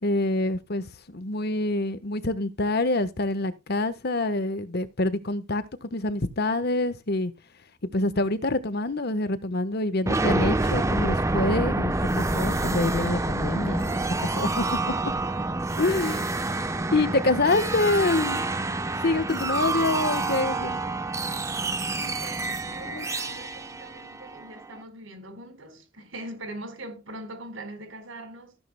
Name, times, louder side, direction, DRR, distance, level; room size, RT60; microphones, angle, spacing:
voice 1, 0.0-7.3 7.9-13.9 14.2-14.7 15.8-16.5 16.9-20.8 21.3-21.4 22.0-22.1 22.9-23.0, left 2 dB, 55° left, 1.2 m, -26 dB
sound 1, 10.1-24.7, right 2 dB, 15° right, 0.8 m, -27 dB
voice 2, 22.1-28.6, right 1 dB, 85° right, 4.5 m, -42 dB
15.0 x 10.5 x 2.2 m
head